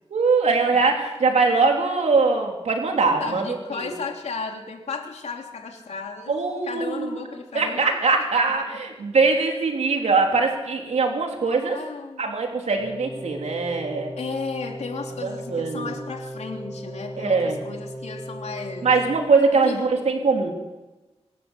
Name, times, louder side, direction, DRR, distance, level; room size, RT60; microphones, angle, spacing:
voice 1, 0.1-3.4 3.7-3.9 6.3-7.2 7.5-11.8 12.2-14.1 15.2-15.9 17.2-17.6 18.8-20.5, right 4 dB, 85° right, 2 dB, 3.5 m, -22 dB
voice 2, 3.2-6.3 6.6-8.3 11.7-12.3 14.2-18.9 19.5-19.8, left 4 dB, 85° left, 3 dB, 3.1 m, -34 dB
sound 1, 12.8-19.1, right 1 dB, 5° left, 4.7 m, -37 dB
25.5 x 13.0 x 8.3 m, 1.1 s
wide cardioid pair, 125°, 11 cm